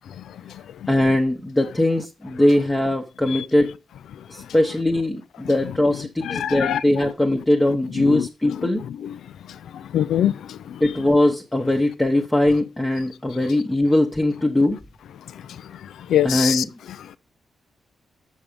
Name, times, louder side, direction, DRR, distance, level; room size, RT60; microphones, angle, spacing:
voice 1, 0.9-3.8 4.3-8.8 10.8-14.8 16.2-16.7, left 1 dB, 10° left, 0.9 m, -20 dB
voice 2, 6.3-6.8 8.0-8.5 9.7-10.8 16.1-16.6, left 10 dB, 85° left, 0.4 m, -23 dB
7.4 x 7.0 x 5.1 m
wide cardioid pair, 165°, 0 cm